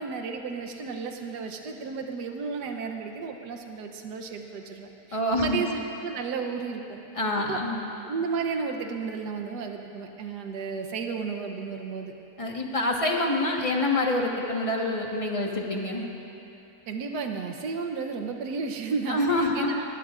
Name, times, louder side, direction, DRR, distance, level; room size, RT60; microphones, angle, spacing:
voice 1, 0.0-7.0 7.4-7.6 8.0-12.1 16.9-19.8, right 5 dB, 90° right, 4 dB, 1.4 m, -33 dB
voice 2, 5.1-5.6 7.1-7.9 12.4-16.1 19.1-19.7, left 1 dB, 20° left, -1 dB, 1.3 m, -26 dB
22.0 x 18.5 x 2.5 m, 3.0 s
omnidirectional pair, 1.7 m